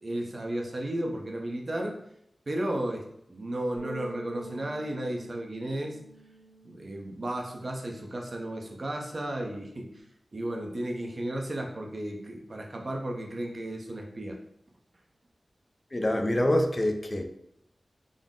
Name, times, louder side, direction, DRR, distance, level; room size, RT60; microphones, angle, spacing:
voice 1, 0.0-2.0 2.5-6.0 6.6-10.0 10.3-14.4, right 1 dB, 55° right, 0.6 m, -34 dB
sound 1, 3.8-8.3 8.6-10.0, right 2 dB, 75° left, 1.2 m, -49 dB
voice 2, 15.9-17.3, left 1 dB, 35° left, 0.4 m, -25 dB
3.8 x 2.0 x 3.7 m
wide cardioid pair, 55°, 0 cm